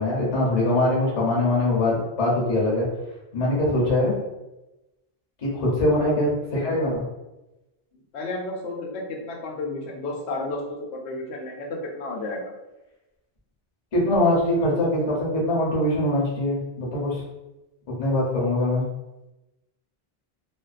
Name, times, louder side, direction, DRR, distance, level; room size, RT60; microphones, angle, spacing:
voice 1, 0.0-2.8 3.3-4.1 5.5-7.0 13.9-17.2 17.9-18.8, left 1 dB, 40° left, -5 dB, 0.8 m, -22 dB
voice 2, 5.5-6.3 6.6-6.8 8.1-12.5, left 2 dB, 90° left, 0 dB, 0.9 m, -32 dB
2.4 x 2.3 x 2.4 m, 1.0 s
omnidirectional pair, 1.1 m